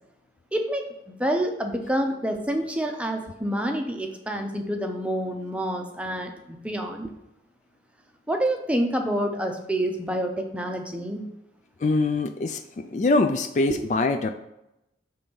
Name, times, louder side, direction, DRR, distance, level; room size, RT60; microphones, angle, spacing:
voice 1, 0.5-7.1 8.3-11.3 13.7-13.9, right 1 dB, 5° right, 4 dB, 0.6 m, -28 dB
voice 2, 11.8-12.6 12.9-14.3, left 3 dB, 40° left, 7 dB, 0.3 m, -23 dB
6.8 x 3.4 x 5.3 m, 0.89 s
head